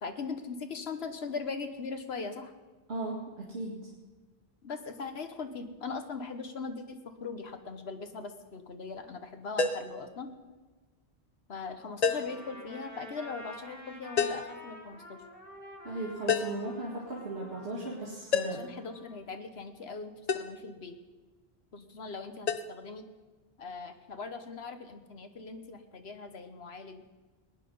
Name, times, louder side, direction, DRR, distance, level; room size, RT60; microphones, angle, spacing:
voice 1, 0.0-2.5 4.6-10.3 11.5-15.2 18.5-20.9 21.7-23.1 23.6-27.0, left 4 dB, 75° left, 8 dB, 1.4 m, -40 dB
voice 2, 2.9-3.9 15.8-18.7, right 2 dB, 85° right, -4 dB, 2.3 m, -37 dB
sound 1, 9.6-10.0 12.0-12.4 14.2-14.5 16.3-16.7 18.3-18.7 20.3-20.6 22.5-22.6, left 5 dB, 45° left, 0.8 m, -29 dB
Trumpet, 12.1-19.2, left 1 dB, 60° right, 4.5 m, -49 dB
20.0 x 9.9 x 5.4 m, 1.3 s
omnidirectional pair, 1.1 m